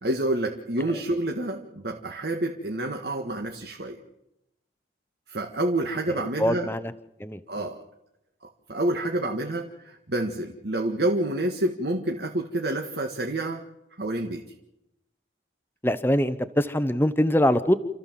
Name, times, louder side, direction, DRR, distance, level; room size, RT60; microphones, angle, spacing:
voice 1, 0.0-4.0 5.3-6.7 7.5-7.8 8.4-13.6 14.0-14.4, right 1 dB, 65° right, 3 dB, 1.8 m, -28 dB
voice 2, 6.4-6.9 7.2-7.7 15.8-17.8, equal, 10° left, 12 dB, 0.9 m, -23 dB
29.0 x 14.5 x 7.5 m, 0.88 s
head